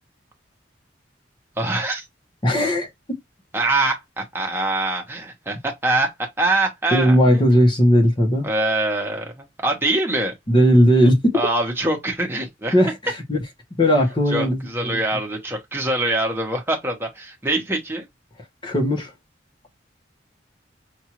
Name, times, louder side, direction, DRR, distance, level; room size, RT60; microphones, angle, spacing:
voice 1, 1.6-2.1 3.5-6.1 6.4-7.6 8.4-10.3 11.3-12.8 14.3-18.1, right 2 dB, 10° right, 1.1 m, -24 dB
voice 2, 2.4-3.2 6.9-8.5 10.5-11.4 12.7-13.4 13.8-15.0 18.6-19.1, equal, 25° left, 1.1 m, -17 dB
5.9 x 2.6 x 3.0 m
head